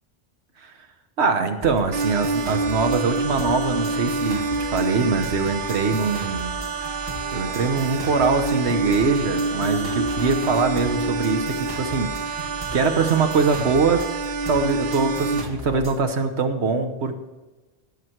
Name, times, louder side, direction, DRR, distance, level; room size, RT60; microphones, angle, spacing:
voice 1, 1.2-6.6 7.3-14.0 14.5-17.2, right 4 dB, 90° right, 7 dB, 1.3 m, -23 dB
sound 1, 1.6-16.0, right 1 dB, 20° right, 1.0 m, -37 dB
sound 2, 1.9-15.4, right 3 dB, 55° right, 0.8 m, -27 dB
17.5 x 7.4 x 4.5 m, 1.2 s
omnidirectional pair, 1.1 m